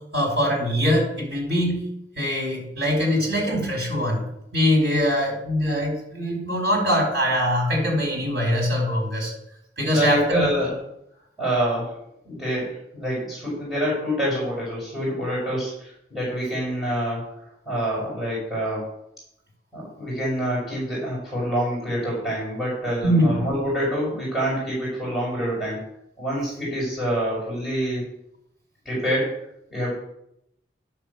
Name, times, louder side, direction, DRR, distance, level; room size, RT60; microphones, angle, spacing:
voice 1, 0.1-1.8 2.1-4.2 4.5-9.3 9.8-10.4 23.0-23.4, equal, 85° right, 0 dB, 5.1 m, -22 dB
voice 2, 9.8-10.7 11.4-12.0 12.2-17.3 17.7-18.9 19.7-25.9 26.2-28.1 28.9-29.4 29.7-29.9, equal, ahead, -7 dB, 5.3 m, -26 dB
10.5 x 7.6 x 6.9 m, 0.78 s
head